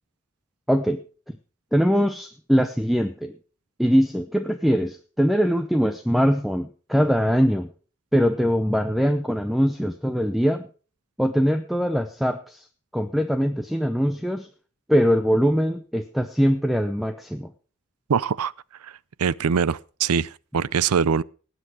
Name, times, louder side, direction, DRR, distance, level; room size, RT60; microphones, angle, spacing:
voice 1, 0.7-1.4 1.7-3.3 3.8-7.7 8.1-10.6 11.2-12.7 12.9-14.5 14.9-17.5, equal, ahead, 0.6 m, -22 dB
voice 2, 18.1-18.5 18.8-18.9 19.2-21.2, right 6 dB, 90° right, 0.5 m, -23 dB
18.5 x 8.0 x 4.8 m
head